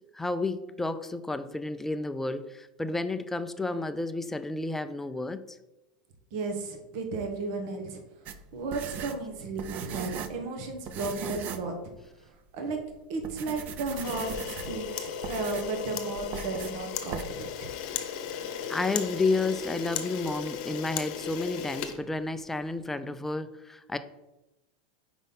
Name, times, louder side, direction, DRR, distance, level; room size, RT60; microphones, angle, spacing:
voice 1, 0.1-5.4 18.7-24.0, left 3 dB, 5° left, 0.4 m, -31 dB
voice 2, 6.3-8.0 8.5-11.8 12.5-12.8 13.1-17.7, right 3 dB, 55° right, 1.2 m, -34 dB
sound 1, 8.3-10.4 10.9-11.7 12.1-12.2 12.8-12.9 13.2-14.8 15.2-15.8 16.3-16.8 17.1-17.2, right 7 dB, 40° right, 0.6 m, -38 dB
Camera, 13.9-22.7, left 8 dB, 60° left, 0.8 m, -36 dB
5.1 x 4.0 x 5.4 m
supercardioid pair, 130°, 4 cm